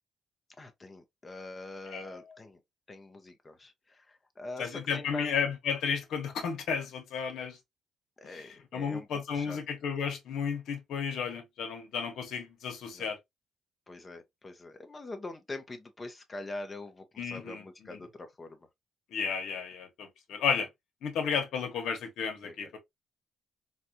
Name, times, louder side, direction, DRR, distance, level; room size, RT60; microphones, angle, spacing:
voice 1, 0.6-2.6 2.9-5.3 8.2-9.6 12.9-13.1 13.9-18.6 22.4-22.8, left 2 dB, 30° left, 0.9 m, -44 dB
voice 2, 1.9-2.2 4.6-7.6 8.3-13.2 17.2-17.6 17.9-18.0 19.1-20.7 21.0-22.8, left 6 dB, 75° left, 1.3 m, -33 dB
4.1 x 2.4 x 2.7 m
cardioid pair, 90°, 0 cm